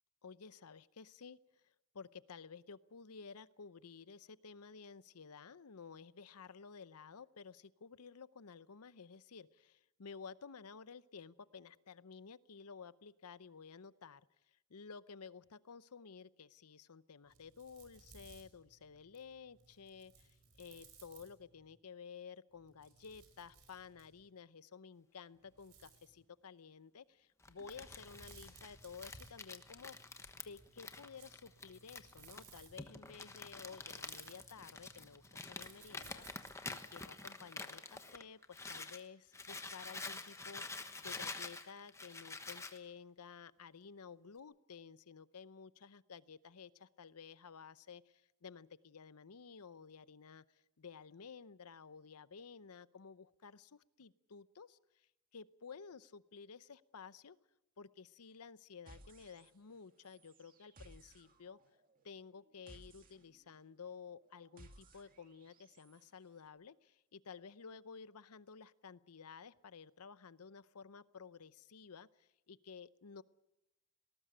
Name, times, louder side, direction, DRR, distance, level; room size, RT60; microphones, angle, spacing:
voice 1, 0.2-14.2 14.5-30.0 30.3-57.4 57.8-61.6 62.0-73.2, left 5 dB, 85° left, 16 dB, 0.7 m, -54 dB
sound 1, 17.2-21.7 22.5-24.3 25.3-26.2 27.6-36.8, right 4 dB, 90° right, 5.4 m, -62 dB
Crumpling crinkling, 27.4-39.0 39.3-42.8, left 3 dB, 15° left, 1.1 m, -48 dB
sound 2, 58.9-59.8 60.0-66.0, right 1 dB, 40° right, 2.1 m, -61 dB
19.0 x 19.0 x 8.9 m, 0.91 s
head